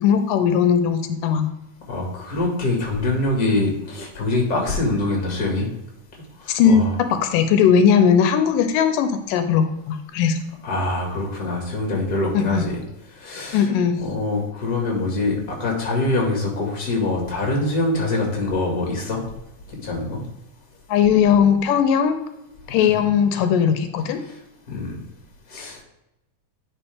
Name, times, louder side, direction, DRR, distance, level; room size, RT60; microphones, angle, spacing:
voice 1, 0.0-1.5 6.5-10.4 12.3-12.7 13.5-14.0 20.9-22.2 22.7-24.2, left 7 dB, 85° left, 8 dB, 2.3 m, -18 dB
voice 2, 1.9-5.7 6.4-6.9 10.6-12.8 13.2-13.6 14.0-19.2 19.8-20.2 22.9-23.0 24.7-25.0 25.5-25.8, left 2 dB, 30° left, -1 dB, 2.2 m, -24 dB
9.9 x 5.0 x 3.5 m, 0.89 s
omnidirectional pair, 3.8 m